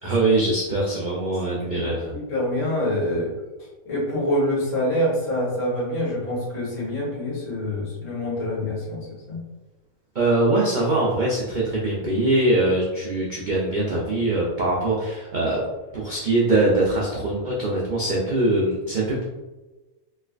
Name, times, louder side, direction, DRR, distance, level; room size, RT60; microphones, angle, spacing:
voice 1, 0.0-2.1 10.1-15.6 15.9-19.2, right 2 dB, 70° right, -4 dB, 0.4 m, -22 dB
voice 2, 1.6-3.3 3.8-9.4, left 1 dB, 75° left, -7 dB, 1.8 m, -26 dB
3.2 x 3.1 x 2.4 m, 1.1 s
omnidirectional pair, 1.5 m